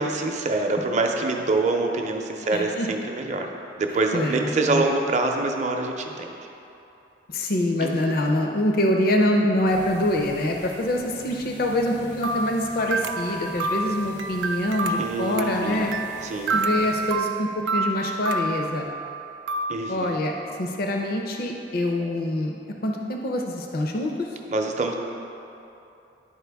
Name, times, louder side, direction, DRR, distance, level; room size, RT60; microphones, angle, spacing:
voice 1, 0.0-3.5 3.8-6.5 7.8-8.1 15.0-15.9 16.2-16.9 19.7-20.2 24.5-24.9, right 3 dB, 45° right, 2 dB, 0.6 m, -25 dB
voice 2, 2.5-2.9 4.1-4.4 4.7-4.8 7.3-15.9 16.5-18.9 19.9-20.3 20.6-22.6 22.8-24.3, left 1 dB, 55° left, 2 dB, 0.5 m, -25 dB
sound 1, 9.6-17.2, equal, 80° left, 0.9 m, -45 dB
sound 2, 12.2-19.8, right 3 dB, 90° right, 0.3 m, -29 dB
10.5 x 4.4 x 3.4 m, 2.8 s
head